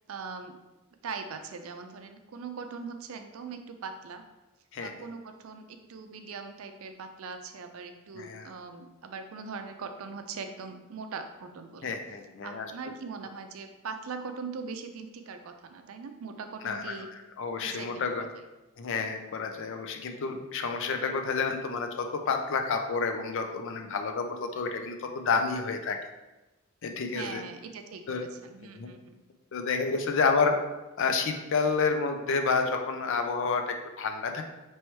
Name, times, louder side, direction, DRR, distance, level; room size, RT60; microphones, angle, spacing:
voice 1, 0.1-0.6 1.0-4.2 4.8-11.9 12.4-17.1 17.6-18.3 27.1-29.2, right 5 dB, 70° right, 7 dB, 0.4 m, -41 dB
voice 2, 8.1-8.5 11.8-12.7 16.6-17.0 17.4-18.3 18.8-26.0 26.8-27.4 28.1-28.3 28.8-28.9 29.5-30.6 31.0-34.4, left 4 dB, 60° left, 5 dB, 0.5 m, -29 dB
4.5 x 3.1 x 3.1 m, 1.1 s
head